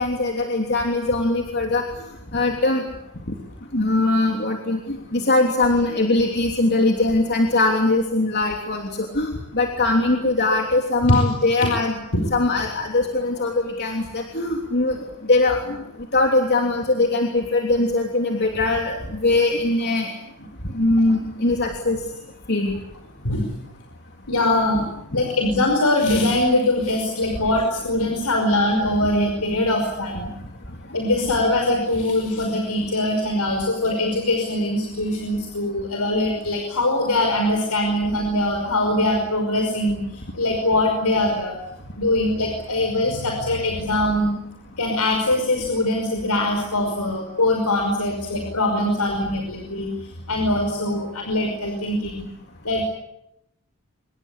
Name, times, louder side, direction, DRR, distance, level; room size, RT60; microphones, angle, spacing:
voice 1, 0.0-1.8 2.3-2.8 3.7-11.9 12.3-15.0 15.3-15.8 16.1-20.1 20.7-22.0 22.5-22.7, left 2 dB, 50° left, 2 dB, 3.3 m, -21 dB
voice 2, 23.2-23.5 24.3-24.8 25.1-30.3 30.9-41.5 42.0-44.4 44.8-49.9 50.3-52.3 52.6-52.9, left 1 dB, 90° left, 3 dB, 5.5 m, -22 dB
27.0 x 22.5 x 8.5 m, 0.81 s
head